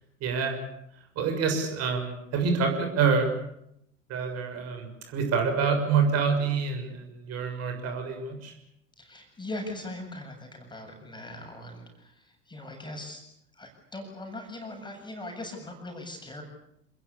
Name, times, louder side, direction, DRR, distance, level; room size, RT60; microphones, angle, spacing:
voice 1, 0.2-0.6 0.9-3.3 4.1-8.5, right 5 dB, 40° right, 5 dB, 6.7 m, -27 dB
voice 2, 9.0-13.2 13.6-16.4, left 1 dB, 10° left, 3 dB, 7.6 m, -40 dB
28.5 x 21.0 x 8.5 m, 0.78 s
figure-of-eight pair, 75°, 38 cm